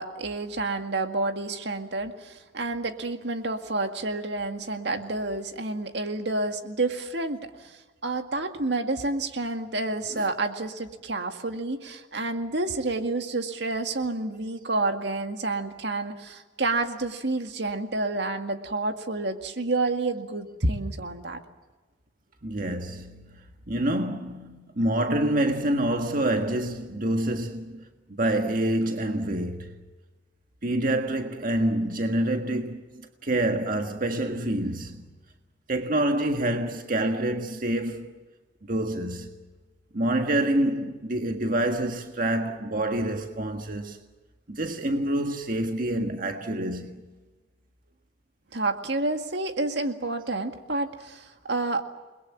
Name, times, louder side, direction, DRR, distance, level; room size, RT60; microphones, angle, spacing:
voice 1, 0.0-21.4 48.5-51.8, right 2 dB, 65° right, 2.1 m, -29 dB
voice 2, 22.4-23.4 23.7-27.8 28.1-29.8 30.6-35.0 35.7-38.1 38.7-39.4 39.9-44.0 44.5-47.0, right 1 dB, 50° right, 1.7 m, -27 dB
29.5 x 21.5 x 7.5 m
head